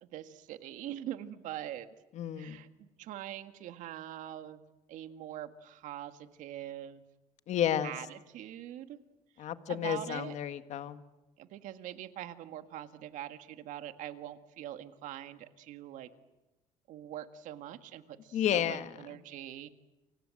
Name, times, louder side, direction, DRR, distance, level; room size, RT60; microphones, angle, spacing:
voice 1, 0.0-1.9 2.4-4.6 4.9-7.0 7.8-9.0 9.7-10.4 11.4-16.1 16.9-19.7, right 12 dB, 70° right, 9 dB, 1.8 m, -43 dB
voice 2, 2.1-2.6 7.5-7.9 9.4-11.0 18.3-18.9, left 10 dB, 60° left, 10 dB, 1.7 m, -31 dB
29.5 x 25.5 x 7.8 m, 1.0 s
cardioid pair, 115°, 13 cm